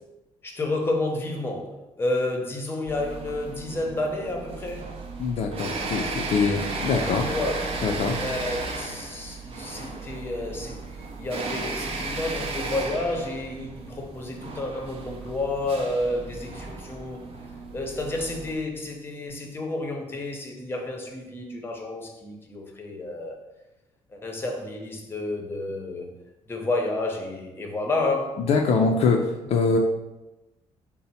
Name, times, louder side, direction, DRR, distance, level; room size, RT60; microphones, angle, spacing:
voice 1, 0.4-4.9 7.3-7.5 8.2-10.8 11.2-17.3 17.7-23.4 24.1-26.1 26.5-28.4, left 2 dB, 20° left, 2 dB, 0.6 m, -30 dB
sound 1, 2.9-18.5, right 3 dB, 50° right, 0.5 m, -35 dB
voice 2, 5.2-7.3 7.8-8.2 28.4-29.8, left 4 dB, 55° left, 2 dB, 0.4 m, -23 dB
4.1 x 2.0 x 4.1 m, 0.98 s
cardioid pair, 125°, 13 cm